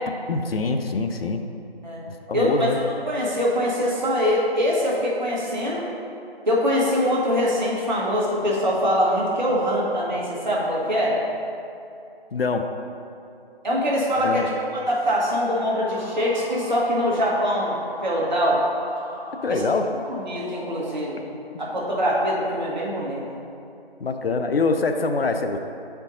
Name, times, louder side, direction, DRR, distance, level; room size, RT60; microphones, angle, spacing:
voice 1, 0.3-1.4 2.3-2.8 12.3-12.7 14.2-14.4 19.4-19.9 24.0-25.6, left 4 dB, 70° left, 6 dB, 0.5 m, -24 dB
voice 2, 2.3-5.9 6.5-11.2 13.6-18.6 19.5-19.6 20.1-21.2 21.6-23.2, equal, 45° right, -5 dB, 1.4 m, -23 dB
sound 1, 15.5-21.6, equal, 15° left, 0.8 m, -41 dB
8.0 x 4.4 x 2.7 m, 2.7 s
figure-of-eight pair, 165°, 31 cm